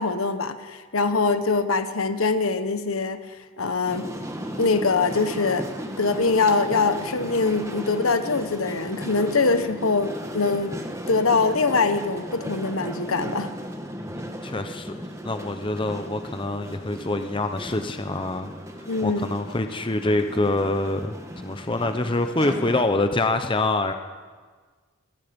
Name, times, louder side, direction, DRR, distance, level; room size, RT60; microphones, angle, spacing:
voice 1, 0.0-4.1 4.6-5.7 6.0-10.8 11.1-13.5 18.9-19.2, left 4 dB, 75° left, 10 dB, 1.3 m, -23 dB
sound 1, 3.9-22.8, equal, 15° right, 1.5 m, -36 dB
voice 2, 14.2-15.0 15.2-18.5 19.0-21.2 21.4-23.9, left 2 dB, 25° left, 7 dB, 0.8 m, -25 dB
27.0 x 18.0 x 5.3 m, 1.5 s
head